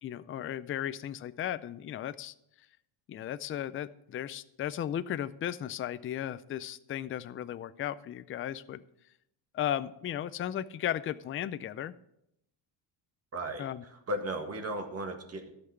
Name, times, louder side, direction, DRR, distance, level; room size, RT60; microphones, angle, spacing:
voice 1, 0.0-2.3 3.1-8.8 9.5-11.9 13.6-13.8, left 11 dB, 30° left, 14 dB, 0.4 m, -35 dB
voice 2, 13.3-15.5, right 1 dB, 30° right, 5 dB, 1.8 m, -36 dB
13.5 x 6.0 x 7.6 m, 0.78 s
cardioid pair, 135°, 46 cm